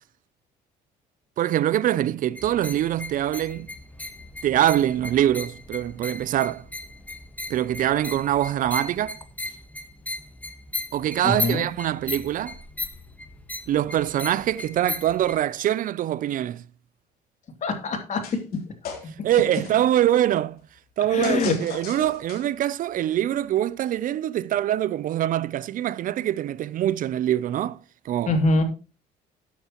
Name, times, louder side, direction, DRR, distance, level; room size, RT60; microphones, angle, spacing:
voice 1, 1.4-3.7 4.4-6.7 7.5-9.2 10.9-12.6 13.7-16.6 19.2-20.6 21.0-27.8 28.0-28.4, right 12 dB, 55° right, 0.4 m, -24 dB
sound 1, 2.3-15.4, left 3 dB, 10° left, 1.4 m, -36 dB
voice 2, 11.2-11.6 17.6-18.2 19.0-19.1 21.1-21.5 28.3-28.6, left 3 dB, 45° left, 2.7 m, -23 dB
sound 2, 18.2-18.6 18.8-19.9 21.2-22.6, left 6 dB, 65° left, 3.5 m, -38 dB
14.0 x 9.1 x 3.0 m
cardioid pair, 110°, 17 cm